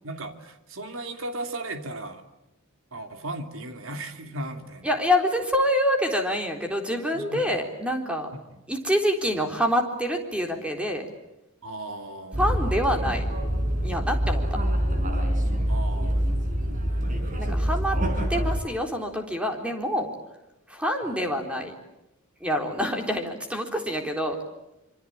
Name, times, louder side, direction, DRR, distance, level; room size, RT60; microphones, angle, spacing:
voice 1, 0.0-2.2 2.9-4.9 7.1-7.6 8.5-8.6 11.6-12.4 15.7-17.1, right 1 dB, 75° right, 6 dB, 3.0 m, -37 dB
voice 2, 4.8-8.3 8.7-11.1 12.4-13.2 13.8-14.6 17.4-18.0 18.3-20.1 20.7-21.7 22.4-24.4, equal, 5° right, 3 dB, 3.8 m, -26 dB
sound 1, 12.3-18.6, equal, 40° right, 5.0 m, -25 dB
26.0 x 25.5 x 8.8 m, 0.93 s
head